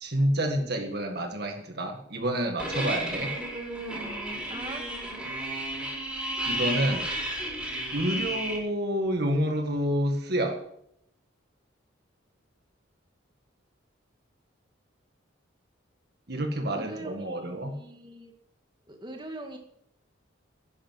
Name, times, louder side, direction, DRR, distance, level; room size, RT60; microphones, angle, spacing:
voice 1, 0.0-3.4 6.4-7.1 7.9-10.6 16.3-17.8, right 1 dB, 50° right, 4 dB, 1.7 m, -28 dB
sound 1, 2.6-8.6, right 1 dB, 5° right, 5.0 m, -32 dB
voice 2, 4.5-4.8 16.7-18.3 18.9-19.6, right 2 dB, 25° right, 3 dB, 2.0 m, -41 dB
11.5 x 10.0 x 7.6 m, 0.71 s
head